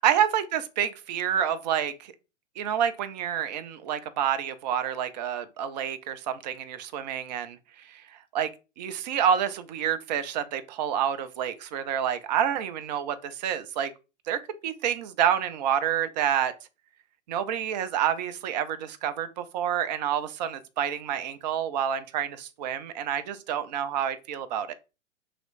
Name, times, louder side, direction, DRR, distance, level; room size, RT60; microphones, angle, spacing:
voice 1, 0.0-2.1 2.6-7.6 8.3-8.5 8.8-13.9 14.3-16.5 17.3-24.7, right 9 dB, 35° right, 0.4 m, -28 dB
3.0 x 2.9 x 4.0 m
figure-of-eight pair, 115°, 38 cm